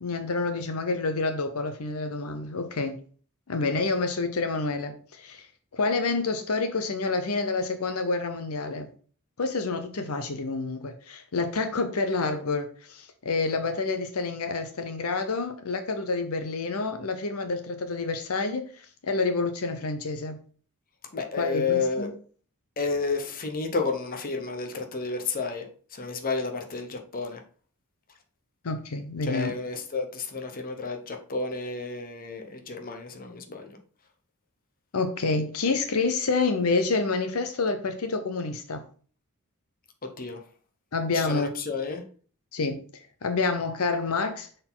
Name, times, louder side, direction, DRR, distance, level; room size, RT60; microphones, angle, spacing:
voice 1, 0.0-3.0 3.5-5.4 5.7-8.9 9.4-20.4 21.4-22.1 28.6-29.5 34.9-38.8 40.9-41.5 42.5-42.8 43.2-44.5, left 3 dB, 70° left, 0.7 m, -28 dB
voice 2, 21.1-22.1 22.8-27.4 29.2-33.8 40.0-40.4 41.1-42.0, left 4 dB, 40° left, 0.9 m, -31 dB
6.6 x 4.0 x 3.9 m
head